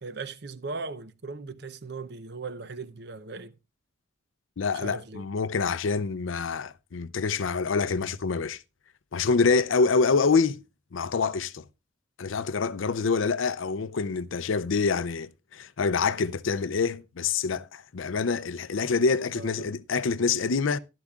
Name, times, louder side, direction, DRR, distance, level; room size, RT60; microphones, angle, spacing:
voice 1, 0.0-3.5 4.7-5.3 19.3-19.7, right 4 dB, 50° right, 0.7 m, -38 dB
voice 2, 4.6-8.6 9.1-10.6 10.9-11.6 12.2-20.8, left 4 dB, 75° left, 0.5 m, -26 dB
12.0 x 12.0 x 2.4 m
head